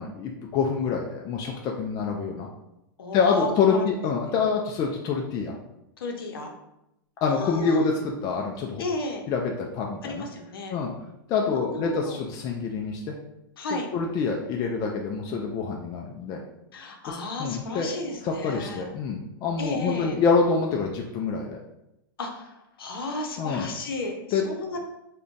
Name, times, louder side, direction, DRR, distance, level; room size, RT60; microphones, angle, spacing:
voice 1, 0.0-2.5 3.1-5.6 7.2-8.8 9.3-10.2 10.7-10.9 11.3-13.0 13.7-16.4 17.1-17.9 18.2-21.6 23.4-23.7 24.3-24.4, left 5 dB, 30° left, 0 dB, 0.3 m, -26 dB
voice 2, 3.0-3.9 6.0-6.5 7.2-7.9 8.8-9.3 10.0-10.7 11.5-12.2 13.6-13.9 16.7-18.9 19.6-20.2 22.2-22.5 22.8-24.8, left 3 dB, 85° left, 2 dB, 0.6 m, -33 dB
3.7 x 2.2 x 2.5 m, 0.87 s
hypercardioid pair, 125°, 12 cm